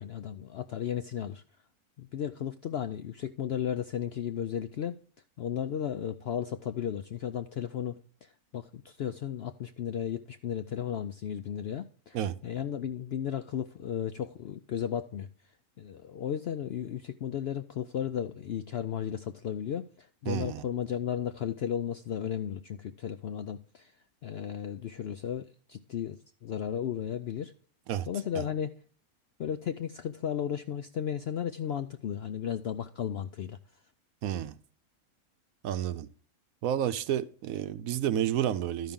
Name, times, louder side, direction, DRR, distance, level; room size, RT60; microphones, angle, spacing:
voice 1, 0.0-1.4 2.0-5.0 5.4-12.2 12.4-15.3 15.8-23.9 24.2-27.5 28.1-28.7 29.4-33.6, left 9 dB, 70° left, 0.6 m, -34 dB
voice 2, 20.3-20.6 27.9-28.1 28.3-28.5 34.2-34.5 35.6-36.1 36.6-38.9, right 10 dB, 75° right, 1.0 m, -30 dB
12.5 x 5.7 x 3.7 m
omnidirectional pair, 1.5 m